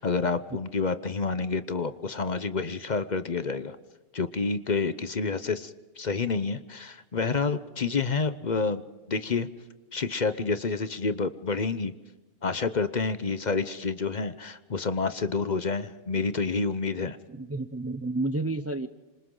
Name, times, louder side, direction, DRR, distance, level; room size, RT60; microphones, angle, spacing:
voice 1, 0.0-3.8 4.1-8.8 9.1-9.5 9.9-11.9 12.4-17.2, left 4 dB, 40° left, 12 dB, 0.8 m, -28 dB
voice 2, 17.3-18.9, right 2 dB, 20° right, 11 dB, 0.3 m, -31 dB
27.0 x 26.5 x 3.9 m, 1.2 s
omnidirectional pair, 1.3 m